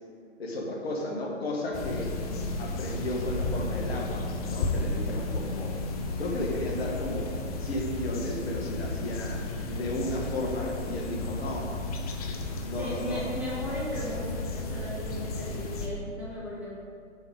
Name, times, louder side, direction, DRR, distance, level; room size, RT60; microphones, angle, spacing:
voice 1, 0.4-2.1 2.6-5.7 6.2-11.7 12.7-13.2, left 1 dB, 55° left, -1 dB, 1.7 m, -34 dB
sound 1, 1.7-15.9, left 2 dB, 30° left, 0.7 m, -33 dB
voice 2, 2.2-2.6 5.0-5.2 12.7-16.8, equal, 5° right, -7 dB, 0.7 m, -37 dB
7.2 x 5.5 x 5.2 m, 2.3 s
figure-of-eight pair, 130°, 37 cm